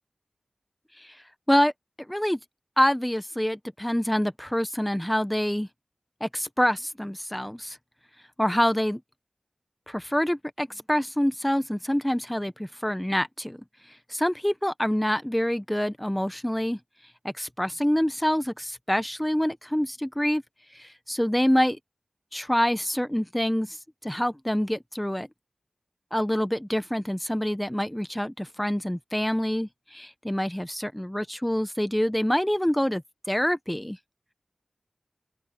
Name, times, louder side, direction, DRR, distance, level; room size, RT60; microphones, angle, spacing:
voice 1, 2.1-2.4 2.8-5.7 6.2-7.8 8.4-9.0 9.9-13.6 14.1-16.8 17.2-20.4 20.8-21.8 22.3-23.8 24.0-25.3 26.1-33.0 33.3-34.0, equal, 10° left, 1.2 m, -26 dB
open air
cardioid pair, 40°, 0 cm